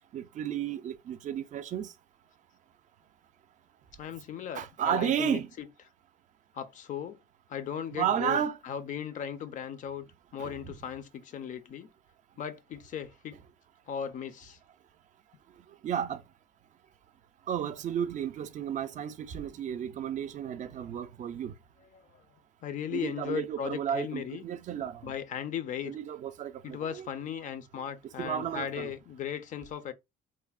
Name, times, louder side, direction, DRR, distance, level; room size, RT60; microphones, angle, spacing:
voice 1, 0.1-1.9 4.5-5.5 7.9-8.6 10.4-10.7 15.8-16.2 17.5-21.5 22.9-25.1 25.8-27.1 28.2-28.9, right 9 dB, 45° right, 0.4 m, -33 dB
voice 2, 4.0-5.7 6.5-7.2 7.5-10.1 10.3-11.9 12.4-13.4 13.9-14.6 21.8-22.0 22.6-24.4 25.0-26.0 26.6-29.9, left 9 dB, 50° left, 0.4 m, -37 dB
3.1 x 2.0 x 2.3 m
cardioid pair, 110°, 17 cm